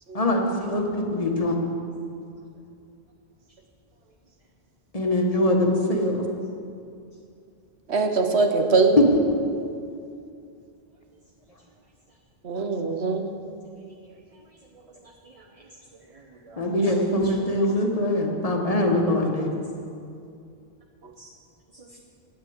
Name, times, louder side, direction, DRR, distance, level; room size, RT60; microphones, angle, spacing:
voice 1, 0.1-1.6 4.9-6.2 9.0-9.1 16.6-19.5, left 1 dB, 35° left, 1 dB, 1.4 m, -22 dB
voice 2, 7.9-9.0 12.4-13.3, right 4 dB, 80° right, 5 dB, 1.3 m, -22 dB
voice 3, 15.0-15.6 16.1-16.9 17.2-17.5 21.2-21.3 21.7-22.0, right 2 dB, 35° right, 1 dB, 0.9 m, -50 dB
9.5 x 9.4 x 7.8 m, 2.5 s
omnidirectional pair, 1.1 m